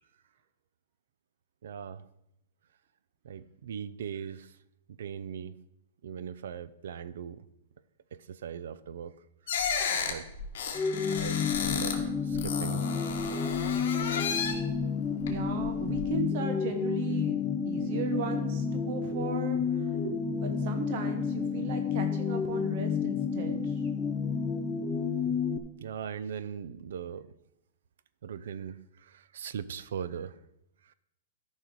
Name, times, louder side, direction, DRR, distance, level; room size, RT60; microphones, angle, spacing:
voice 1, 1.6-2.1 3.2-4.6 4.9-5.6 6.0-7.5 8.1-9.1 9.6-9.7 10.1-10.3 11.1-12.9 13.3-13.5 25.8-27.3 28.2-30.4 30.8-30.9, right 8 dB, 75° right, 16 dB, 0.5 m, -40 dB
sound 1, 9.5-12.0 12.3-14.7 15.2-16.0, left 6 dB, 60° left, 1.6 m, -33 dB
sound 2, 10.7-25.6, left 6 dB, 10° left, 0.5 m, -30 dB
voice 2, 15.3-17.4 17.7-19.6 20.0-23.7, right 6 dB, 40° right, 7 dB, 0.8 m, -36 dB
13.5 x 5.5 x 4.7 m, 0.83 s
supercardioid pair, 175°, 0 cm